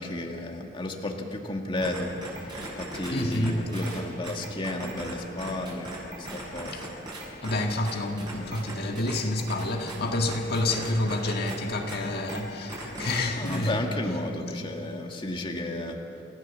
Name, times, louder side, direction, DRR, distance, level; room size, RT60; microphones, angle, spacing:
voice 1, 0.0-5.9 6.2-6.9 13.4-16.0, left 1 dB, 30° left, 1.9 m, -33 dB
sound 1, 1.8-5.1 5.4-7.5 7.9-10.0 10.3-11.6 11.9-12.0 12.3-12.4 12.7-13.2 13.5-13.7, right 1 dB, 25° right, 7.6 m, -38 dB
voice 2, 3.1-3.6 7.4-13.8, left 1 dB, 60° left, 1.7 m, -28 dB
28.5 x 15.5 x 7.4 m
head